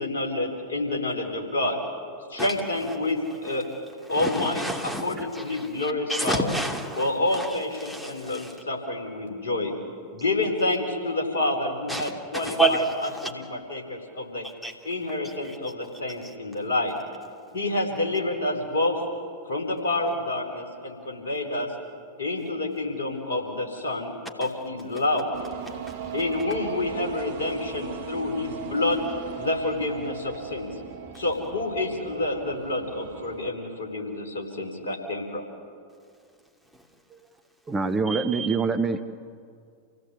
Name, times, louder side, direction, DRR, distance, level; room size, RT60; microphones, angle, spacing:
voice 1, 0.0-1.8 2.3-3.7 4.1-4.6 5.0-6.5 7.0-9.7 10.1-12.8 13.2-14.4 14.8-16.9 17.5-19.0 19.5-21.7 22.2-24.1 24.4-25.3 26.1-29.0 29.3-30.7 31.1-35.5, left 2 dB, 70° left, 2 dB, 4.4 m, -28 dB
voice 2, 4.1-8.5 11.9-13.3 14.6-14.7 15.2-15.6, right 2 dB, 5° left, 1 dB, 3.0 m, -30 dB
sound 1, 25.3-33.5, right 8 dB, 55° right, 1.6 m, -38 dB
voice 3, 37.7-39.0, right 4 dB, 15° right, 8 dB, 1.0 m, -25 dB
28.0 x 17.0 x 8.5 m, 2.3 s
figure-of-eight pair, 90°, 0 cm